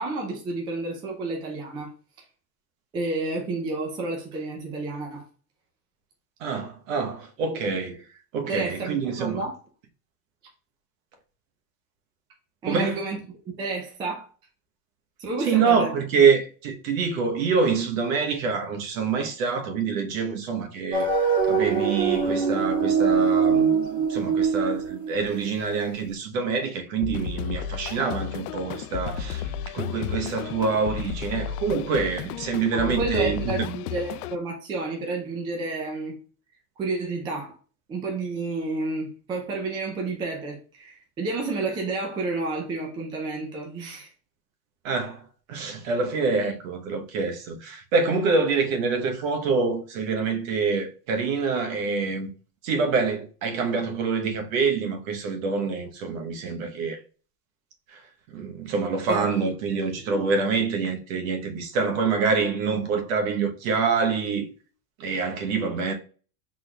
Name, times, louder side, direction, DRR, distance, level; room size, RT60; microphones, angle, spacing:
voice 1, 0.0-1.9 2.9-5.2 8.5-9.5 12.6-13.2 13.6-14.3 15.2-15.9 32.7-36.2 36.8-37.6 37.9-44.1 59.1-59.8 60.1-60.3, right 3 dB, 10° right, 0.4 m, -30 dB
voice 2, 6.4-8.0 8.3-9.5 12.7-13.0 15.4-21.2 21.5-33.6 44.8-45.2 45.5-52.3 52.6-57.0 57.9-58.0 58.3-64.5 65.0-65.9, right 5 dB, 60° right, 1.0 m, -26 dB
sound 1, 20.9-25.8, right 5 dB, 45° right, 2.0 m, -23 dB
sound 2, 27.0-34.4, left 9 dB, 85° left, 0.5 m, -33 dB
5.9 x 3.7 x 2.3 m
supercardioid pair, 160°, 45 cm